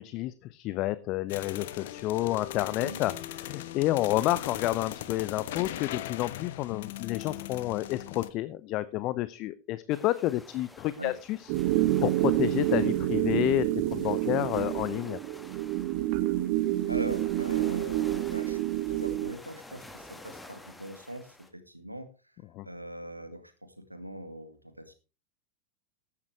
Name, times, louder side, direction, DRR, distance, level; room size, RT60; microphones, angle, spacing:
voice 1, 0.0-11.5 12.0-13.6 13.9-15.2 22.5-22.6, left 16 dB, 40° left, 17 dB, 0.6 m, -30 dB
sound 1, 1.3-8.3, left 13 dB, 55° left, 1.0 m, -39 dB
sound 2, 9.9-21.5, left 1 dB, 5° left, 1.7 m, -50 dB
sound 3, 11.5-19.3, right 15 dB, 45° right, 0.9 m, -28 dB
voice 2, 16.9-18.6 18.8-22.1 22.6-24.9, right 1 dB, 90° right, 9 dB, 1.9 m, -41 dB
14.5 x 10.5 x 3.3 m, 0.32 s
figure-of-eight pair, 90°, 0 cm